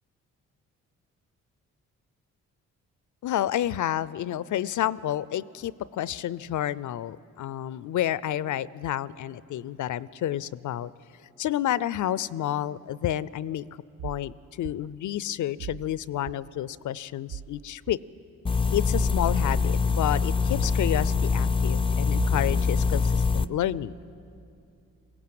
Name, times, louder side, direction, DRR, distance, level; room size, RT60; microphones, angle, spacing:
voice 1, 3.2-10.9 11.4-13.6 14.0-18.0 18.7-24.0, left 12 dB, 60° left, 19 dB, 0.5 m, -30 dB
sound 1, 14.0-14.2 14.6-14.8 15.6-15.9 16.3-16.4 17.3-17.5 17.9-18.0 18.9-19.1 19.5-19.6 20.5-20.8 21.1-21.2 22.1-22.4 22.8-22.9, right 10 dB, 65° right, 0.6 m, -37 dB
sound 2, 18.5-23.5, left 5 dB, 15° left, 0.5 m, -24 dB
21.5 x 17.0 x 7.7 m, 2.6 s
supercardioid pair, 60°, 34 cm